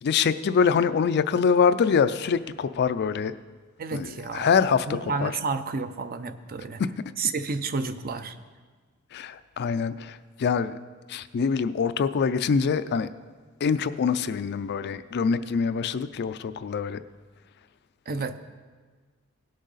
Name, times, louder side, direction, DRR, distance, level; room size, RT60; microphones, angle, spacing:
voice 1, 0.0-3.3 3.9-4.9 5.2-5.3 6.8-6.9 9.1-10.7 11.1-13.1 13.6-17.0, left 6 dB, 50° left, 13 dB, 0.4 m, -24 dB
voice 2, 3.8-4.5 4.9-6.8 7.2-8.4 18.1-18.4, right 4 dB, 45° right, 10 dB, 0.5 m, -30 dB
17.5 x 6.4 x 4.0 m, 1.5 s
head